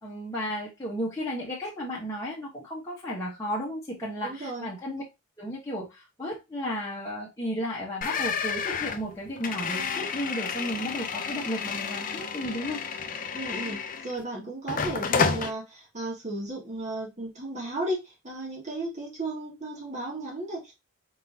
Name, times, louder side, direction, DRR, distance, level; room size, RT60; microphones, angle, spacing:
voice 1, 0.0-5.0 5.4-12.8 14.4-14.5, equal, 15° left, 1.1 m, -34 dB
voice 2, 4.2-4.7 13.3-20.7, right 2 dB, 35° right, 1.9 m, -34 dB
sound 1, 8.0-14.2 14.7-15.5, left 5 dB, 40° left, 0.5 m, -30 dB
4.7 x 3.8 x 2.8 m
head